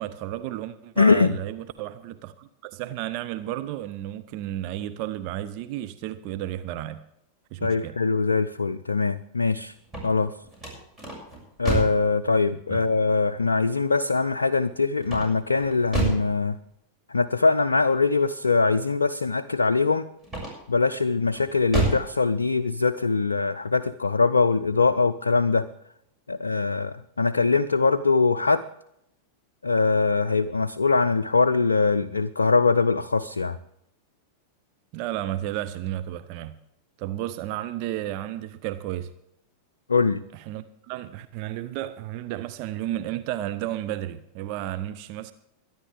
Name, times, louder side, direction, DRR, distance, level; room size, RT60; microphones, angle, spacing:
voice 1, 0.0-7.0 7.5-8.0 12.7-12.8 34.9-36.5 37.0-39.1 40.5-45.3, right 13 dB, 45° right, 0.6 m, -32 dB
voice 2, 1.0-1.4 7.6-9.7 10.0-10.3 11.6-16.6 17.1-20.1 20.7-25.7 26.3-28.6 29.6-33.6 39.9-40.2, left 4 dB, 75° left, 0.4 m, -22 dB
sound 1, 9.8-12.1 15.0-16.3 20.2-20.8 21.3-22.1, right 2 dB, 15° right, 6.4 m, -28 dB
23.0 x 10.5 x 3.5 m
figure-of-eight pair, 90°, 0 cm